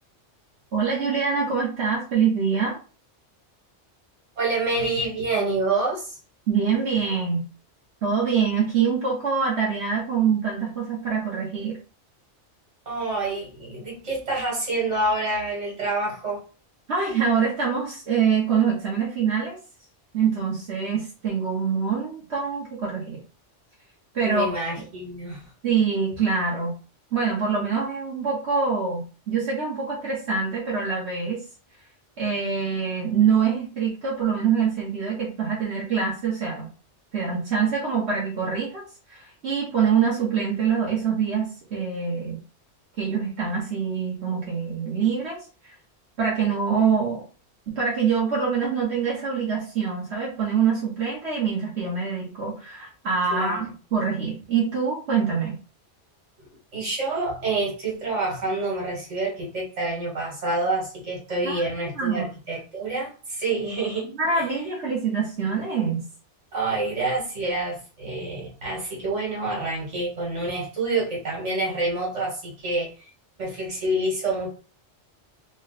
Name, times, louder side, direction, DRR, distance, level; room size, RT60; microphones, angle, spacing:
voice 1, 0.7-2.8 6.5-7.5 8.0-11.8 16.9-19.6 20.1-23.2 24.1-24.5 25.6-26.8 27.1-31.4 32.2-36.7 37.1-38.8 39.1-42.4 43.0-45.7 46.2-47.2 47.7-55.5 61.4-62.3 64.0-66.0, right 6 dB, 70° right, -4 dB, 1.3 m, -25 dB
voice 2, 4.4-6.2 12.9-16.4 24.2-25.4 53.3-53.7 56.7-64.5 66.5-73.1 73.4-74.5, right 2 dB, 85° right, -3 dB, 1.9 m, -27 dB
3.9 x 2.1 x 4.0 m, 0.36 s
omnidirectional pair, 1.2 m